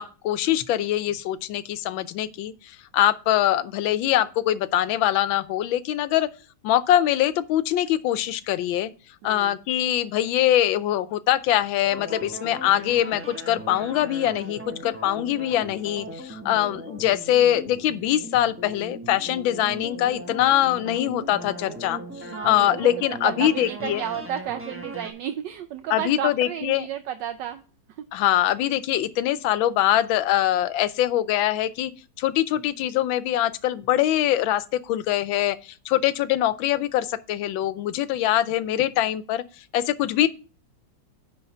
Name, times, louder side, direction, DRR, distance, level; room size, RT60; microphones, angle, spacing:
voice 1, 0.0-6.3 6.6-8.9 9.2-24.0 25.9-26.8 28.1-31.9 32.2-40.3, left 12 dB, 90° left, 1.4 m, -23 dB
voice 2, 9.2-9.6 22.3-27.6 27.9-28.1, right 10 dB, 75° right, 1.2 m, -32 dB
sound 1, 11.9-25.1, right 1 dB, 10° right, 0.7 m, -38 dB
9.9 x 4.0 x 5.4 m
omnidirectional pair, 2.1 m